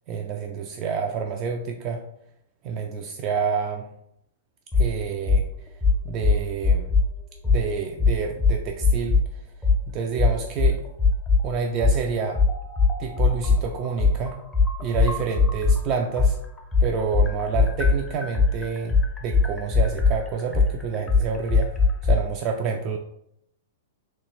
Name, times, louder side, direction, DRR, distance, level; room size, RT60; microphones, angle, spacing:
voice 1, 0.1-2.0 2.6-3.9 4.7-5.5 6.0-6.9 7.5-9.2 9.9-10.8 11.4-12.4 13.0-14.4 14.8-16.4 16.8-19.0 19.2-21.7 22.0-23.0, right 5 dB, 40° right, 3 dB, 0.3 m, -28 dB
sound 1, 4.7-4.9 5.3-5.4 5.8-7.1 7.4-7.6 8.0-9.3 9.6-9.8 10.2-11.4 11.8-15.8 16.2-22.2, left 4 dB, 10° left, 0.6 m, -20 dB
3.2 x 3.1 x 3.0 m, 0.76 s
hypercardioid pair, 125°, 0 cm